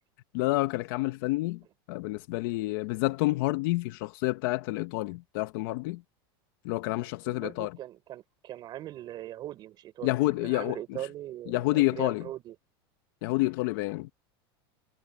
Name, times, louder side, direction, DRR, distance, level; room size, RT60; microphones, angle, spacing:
voice 1, 0.3-1.6 1.9-6.0 6.6-7.8 10.0-11.0 11.5-12.2 13.2-14.1, left 20 dB, 60° left, 0.9 m, -29 dB
voice 2, 7.2-12.6, right 13 dB, 35° right, 4.0 m, -40 dB
supercardioid pair, 155°, 13 cm